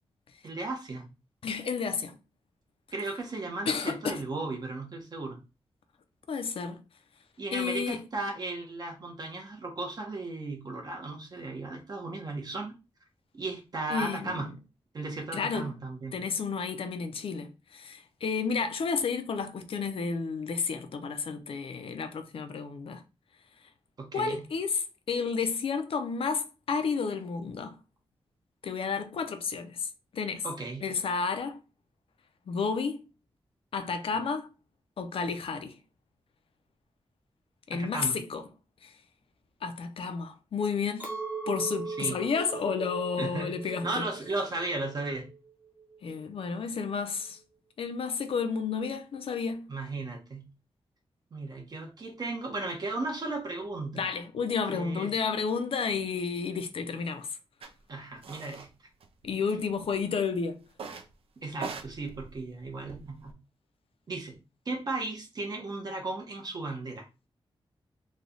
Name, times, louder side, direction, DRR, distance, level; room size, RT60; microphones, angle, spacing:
voice 1, 0.4-1.1 2.9-5.4 7.4-12.7 13.3-14.5 14.9-16.1 24.0-24.4 30.4-30.9 37.7-38.2 41.9-42.2 43.2-43.6 43.8-45.3 49.7-50.5 51.3-54.0 54.7-55.1 57.9-58.7 61.4-63.3 64.1-64.4 64.7-67.0, right 2 dB, 40° right, 0.9 m, -35 dB
voice 2, 1.4-2.2 3.7-4.2 6.3-6.8 7.5-8.0 13.9-14.5 15.3-15.7 16.1-23.0 24.1-27.7 28.6-30.5 30.8-31.6 32.5-33.0 33.7-34.5 35.0-35.7 37.7-38.4 38.8-38.9 39.6-41.2 41.5-44.0 46.0-47.4 47.8-49.7 53.9-57.4 59.2-60.6, left 5 dB, 70° left, 0.5 m, -31 dB
Chink clink, 41.0-46.4, right 4 dB, 15° right, 0.8 m, -40 dB
sound 1, 57.6-57.7 58.2-58.7 59.0-59.7 60.7-61.1 61.5-63.3, right 5 dB, 75° right, 0.5 m, -42 dB
3.1 x 2.3 x 3.9 m
wide cardioid pair, 180°, 10 cm